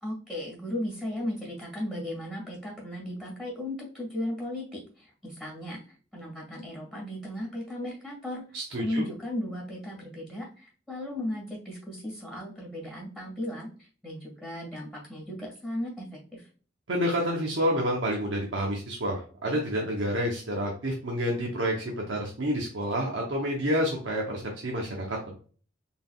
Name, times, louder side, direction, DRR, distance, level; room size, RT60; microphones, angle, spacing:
voice 1, 0.0-8.4 8.8-16.5, left 1 dB, 5° right, -2 dB, 1.8 m, -36 dB
voice 2, 8.5-9.0 16.9-25.3, equal, 80° right, -1 dB, 0.8 m, -29 dB
4.0 x 3.6 x 2.3 m, 0.40 s
head